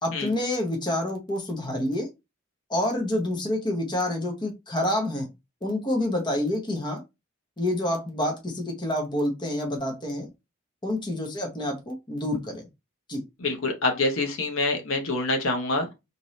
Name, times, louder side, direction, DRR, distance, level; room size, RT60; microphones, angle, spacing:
voice 1, 0.0-2.1 2.7-5.3 5.6-7.0 7.6-10.3 10.8-12.7 13.1-13.2, left 1 dB, 20° left, 0.8 m, -28 dB
voice 2, 13.4-15.9, left 2 dB, 65° left, 0.8 m, -26 dB
2.7 x 2.6 x 3.1 m
head